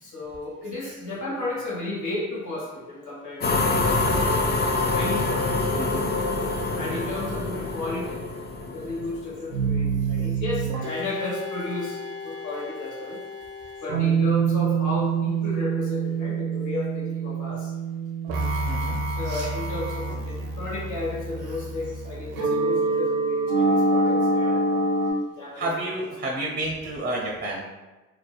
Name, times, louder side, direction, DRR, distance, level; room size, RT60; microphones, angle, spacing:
voice 1, 0.0-3.7 4.9-5.7 6.7-8.2 8.7-13.2 13.8-17.7 19.2-24.8 25.4-25.7, left 2 dB, 55° left, -5 dB, 1.1 m, -33 dB
sound 1, 3.4-9.6, left 3 dB, 30° left, 0.4 m, -26 dB
voice 2, 5.8-6.1 18.6-18.9 19.2-19.5 25.5-27.6, right 1 dB, 30° right, -2 dB, 0.5 m, -30 dB
sound 2, 9.5-25.1, right 3 dB, 75° right, 0.5 m, -26 dB
2.6 x 2.1 x 2.3 m, 1.1 s
hypercardioid pair, 45°, 37 cm